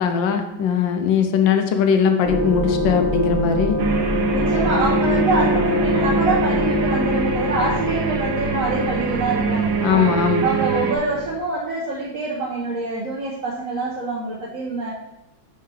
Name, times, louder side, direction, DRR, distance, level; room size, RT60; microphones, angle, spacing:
voice 1, 0.0-3.8 9.8-10.6, left 6 dB, 75° left, 6 dB, 1.5 m, -19 dB
sound 1, 2.2-11.4, left 2 dB, 25° right, 0.4 m, -24 dB
sound 2, 3.8-11.0, right 5 dB, 80° right, 1.5 m, -24 dB
voice 2, 4.3-10.1 10.4-14.9, right 3 dB, 50° right, -4 dB, 1.1 m, -25 dB
5.6 x 4.6 x 4.7 m, 0.92 s
omnidirectional pair, 2.2 m